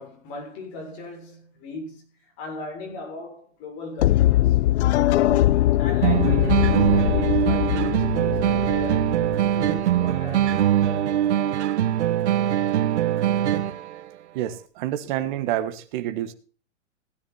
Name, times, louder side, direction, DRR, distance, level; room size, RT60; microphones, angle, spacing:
voice 1, 0.0-4.8 5.1-11.1, left 2 dB, 35° left, 6.8 m, -38 dB
sound 1, 4.0-10.0, left 14 dB, 65° left, 0.5 m, -21 dB
sound 2, 6.0-14.0, right 11 dB, 65° right, 1.2 m, -22 dB
voice 2, 14.3-16.3, right 12 dB, 40° right, 1.6 m, -28 dB
16.5 x 10.5 x 4.3 m
hypercardioid pair, 155°, 36 cm